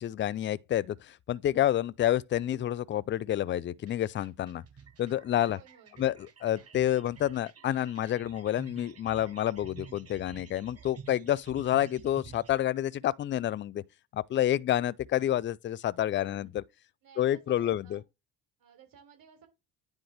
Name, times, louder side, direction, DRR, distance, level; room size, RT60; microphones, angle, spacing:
voice 1, 0.0-4.6 5.0-5.6 6.0-13.8 14.1-16.6 17.2-18.0, left 12 dB, 30° left, 0.4 m, -29 dB
sound 1, 3.8-12.5, right 6 dB, 35° right, 1.8 m, -50 dB
voice 2, 5.5-6.0 16.1-16.5 17.0-18.0 18.6-19.5, right 7 dB, 50° right, 3.8 m, -57 dB
9.9 x 3.5 x 3.5 m
hypercardioid pair, 65°, 43 cm